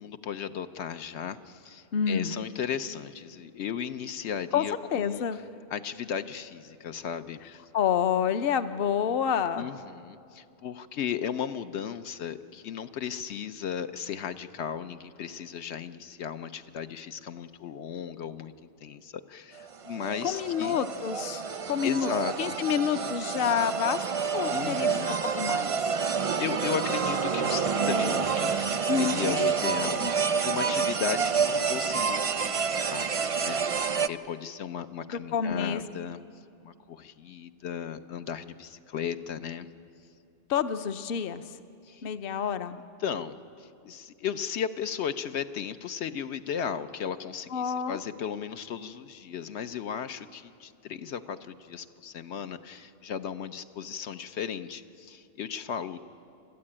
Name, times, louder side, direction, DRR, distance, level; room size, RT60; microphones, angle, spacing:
voice 1, 0.0-5.4 5.7-7.4 9.5-20.8 21.8-22.6 24.5-25.1 26.0-36.2 36.6-39.7 41.8-42.0 43.0-56.0, left 8 dB, 85° left, 9 dB, 1.0 m, -36 dB
voice 2, 1.9-2.3 4.5-4.6 4.9-5.4 7.7-9.7 20.2-22.1 22.4-24.0 24.3-25.7 28.9-29.5 30.0-30.1 35.1-35.8 40.5-41.4 42.0-42.8 47.5-48.0, left 8 dB, 60° left, 10 dB, 0.9 m, -28 dB
sound 1, 19.6-34.1, right 6 dB, 45° right, 0.5 m, -28 dB
28.0 x 13.0 x 8.7 m, 2.5 s
omnidirectional pair, 1.1 m